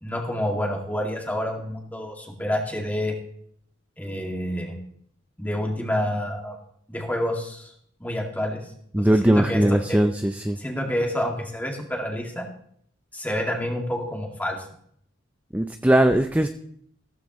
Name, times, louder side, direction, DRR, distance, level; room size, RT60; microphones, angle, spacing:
voice 1, 0.0-3.1 4.0-4.8 5.4-6.6 6.9-7.7 8.0-8.6 9.0-10.0 10.6-12.5 13.1-14.6, left 1 dB, 10° left, 1 dB, 2.2 m, -28 dB
voice 2, 8.9-10.6 15.5-16.5, right 1 dB, 10° right, 8 dB, 0.5 m, -20 dB
15.5 x 14.0 x 3.1 m, 0.66 s
head